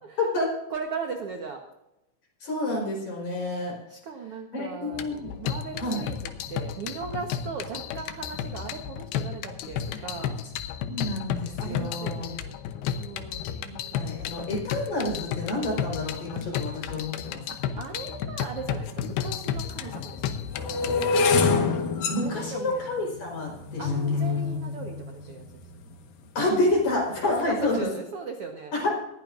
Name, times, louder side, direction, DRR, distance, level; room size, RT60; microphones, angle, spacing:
voice 1, 0.2-0.5 2.4-3.8 4.5-5.3 5.8-6.0 10.0-10.1 10.9-12.3 13.9-17.4 22.1-23.9 24.1-24.2 26.4-27.8 28.7-28.9, left 2 dB, 50° left, -1 dB, 5.6 m, -28 dB
voice 2, 0.7-1.6 3.9-5.1 5.4-6.2 6.5-10.3 11.6-12.6 13.0-14.1 17.5-20.5 22.2-22.9 23.8-25.4 25.8-25.9 27.5-28.7, right 5 dB, 70° right, 3 dB, 1.4 m, -38 dB
sound 1, 4.9-21.2, left 8 dB, 85° left, 2.8 m, -33 dB
sound 2, 18.9-19.0 19.7-25.9 26.5-26.9 27.2-27.5, left 4 dB, 70° left, 3.0 m, -27 dB
20.0 x 15.5 x 2.6 m, 0.90 s
omnidirectional pair, 4.4 m